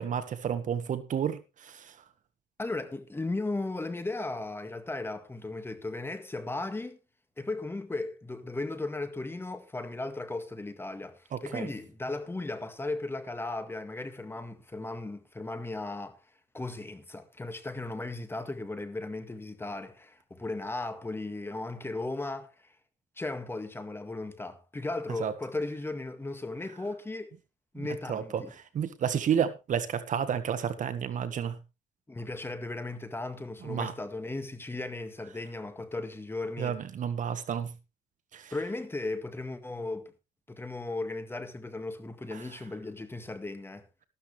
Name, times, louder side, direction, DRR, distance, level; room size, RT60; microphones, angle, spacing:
voice 1, 0.0-2.0 11.3-11.7 25.2-25.3 27.7-31.6 33.6-33.9 36.6-37.7 38.3-38.5 42.3-42.4, right 8 dB, 50° right, 1.4 m, -31 dB
voice 2, 2.6-7.0 7.4-16.2 16.5-22.7 23.2-27.3 27.7-28.5 32.1-36.8 38.5-40.1 40.5-43.9, left 2 dB, 15° left, 1.8 m, -36 dB
13.0 x 12.5 x 3.2 m
cardioid pair, 110°, 17 cm